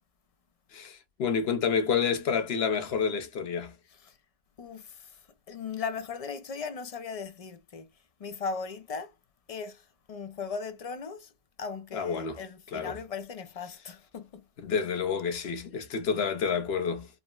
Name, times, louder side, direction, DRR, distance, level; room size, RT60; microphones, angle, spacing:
voice 1, 0.7-3.7 11.9-12.4 12.7-12.9 14.6-17.1, left 6 dB, 80° left, 1.0 m, -29 dB
voice 2, 4.6-5.2 5.5-7.9 8.2-9.1 9.5-11.3 11.6-14.4, left 5 dB, 50° left, 0.4 m, -38 dB
3.8 x 2.0 x 2.2 m
omnidirectional pair, 1.0 m